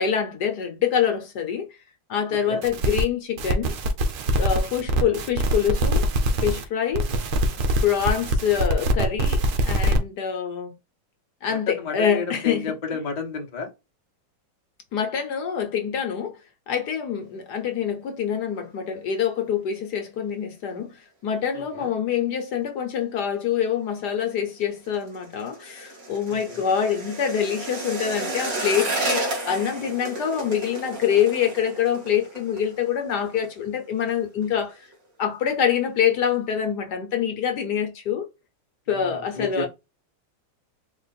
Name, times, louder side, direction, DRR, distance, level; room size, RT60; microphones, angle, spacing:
voice 1, 0.0-1.7 2.1-3.7 4.4-6.0 6.4-7.1 7.8-10.7 11.4-12.8 14.9-16.4 16.7-21.0 21.2-34.9 35.2-38.3 38.9-39.7, left 8 dB, 60° left, 1.3 m, -25 dB
sound 1, 2.6-3.0 3.4-6.6 6.9-10.0, right 1 dB, 85° right, 1.7 m, -23 dB
voice 2, 11.5-13.7 21.7-21.9 26.6-26.7 39.0-39.7, left 4 dB, 35° left, 0.7 m, -31 dB
sound 2, 24.5-33.5 33.8-34.1 34.4-34.9 35.3-35.4, right 2 dB, 45° right, 2.1 m, -32 dB
4.6 x 2.5 x 4.0 m
omnidirectional pair, 2.2 m